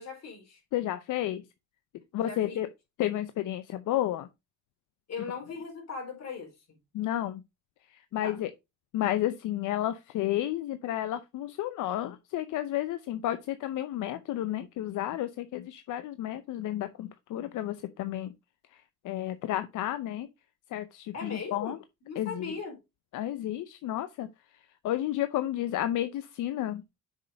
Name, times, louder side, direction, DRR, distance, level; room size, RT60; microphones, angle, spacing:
voice 1, 0.0-0.6 2.2-2.6 5.1-6.8 8.1-8.4 21.1-21.8 22.0-22.8, left 5 dB, 60° left, 4.1 m, -39 dB
voice 2, 0.7-1.4 2.1-2.7 3.0-4.3 6.9-7.4 7.9-8.5 8.9-18.3 18.7-20.3 20.7-21.8 22.2-22.5 23.1-26.8, left 13 dB, 85° left, 0.7 m, -32 dB
6.5 x 5.0 x 5.1 m
cardioid pair, 90°, 30 cm